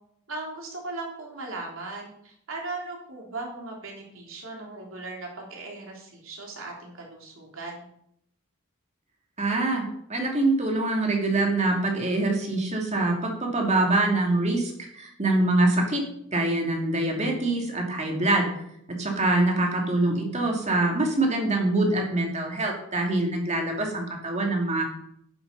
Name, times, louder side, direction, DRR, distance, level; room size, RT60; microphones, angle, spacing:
voice 1, 0.3-7.9, right 2 dB, 65° right, 0 dB, 3.5 m, -38 dB
voice 2, 9.4-16.0 16.3-18.5 18.9-24.9, right 2 dB, 35° right, 1 dB, 2.5 m, -24 dB
11.0 x 7.0 x 6.8 m, 0.74 s
head